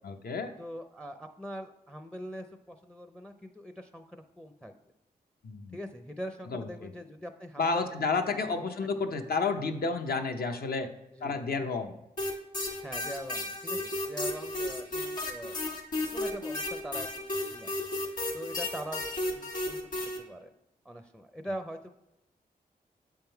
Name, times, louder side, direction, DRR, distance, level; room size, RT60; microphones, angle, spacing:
voice 1, 0.0-0.5 5.4-5.8 6.5-6.9 7.6-10.9 11.2-12.0, left 4 dB, 65° left, 5 dB, 0.7 m, -31 dB
voice 2, 0.6-4.7 5.7-8.0 8.3-8.7 11.1-11.4 12.8-15.6 16.1-17.7 18.3-20.5 20.8-21.9, equal, 5° left, 7 dB, 0.5 m, -42 dB
sound 1, 12.2-20.2, left 1 dB, 50° left, 1.6 m, -33 dB
7.6 x 3.6 x 4.5 m, 0.92 s
cardioid pair, 70°, 17 cm